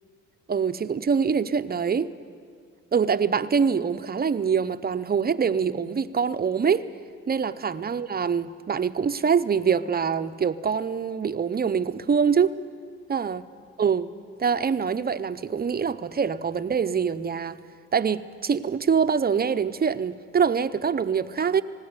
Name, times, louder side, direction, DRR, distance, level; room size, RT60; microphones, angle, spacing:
voice 1, 0.5-2.1 2.9-6.9 7.3-12.6 13.1-13.5 13.8-14.1 14.4-17.6 17.9-21.6, right 6 dB, 30° right, 0.8 m, -24 dB
19.5 x 17.0 x 9.8 m
cardioid pair, 90°, 30 cm